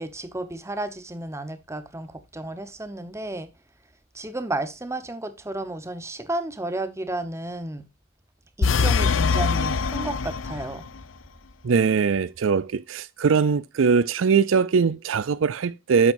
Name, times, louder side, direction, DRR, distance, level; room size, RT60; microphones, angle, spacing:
voice 1, 0.0-3.5 4.1-7.9 8.6-10.9, right 1 dB, 15° right, 1.0 m, -32 dB
sound 1, 8.6-10.9, left 5 dB, 70° left, 0.6 m, -23 dB
voice 2, 11.6-16.1, right 5 dB, 70° right, 0.4 m, -21 dB
9.3 x 7.6 x 2.6 m
head